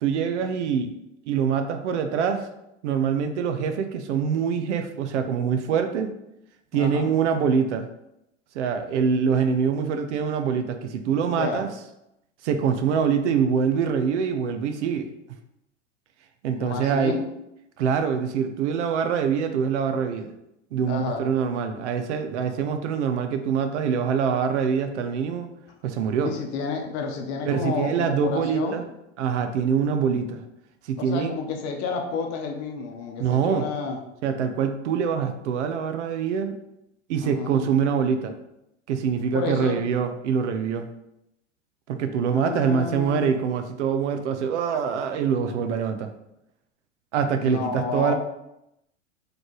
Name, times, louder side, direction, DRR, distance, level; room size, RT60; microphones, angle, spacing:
voice 1, 0.0-0.9 1.3-2.5 2.8-6.1 6.7-7.9 8.5-11.7 12.4-15.1 16.4-17.2 17.8-20.3 20.7-25.5 25.8-26.3 27.5-28.8 29.2-30.4 30.8-31.4 33.2-33.7 34.2-36.6 37.1-38.3 38.9-40.9 41.9-46.1 47.1-48.1, right 7 dB, 70° right, 8 dB, 0.6 m, -24 dB
voice 2, 6.7-7.1 11.3-11.6 16.6-17.3 20.9-21.2 26.2-28.8 31.0-34.0 37.2-37.6 39.3-39.8 42.3-43.3 47.4-48.1, left 5 dB, 45° left, 3 dB, 0.8 m, -30 dB
4.1 x 3.2 x 3.1 m, 0.85 s
hypercardioid pair, 95°, 36 cm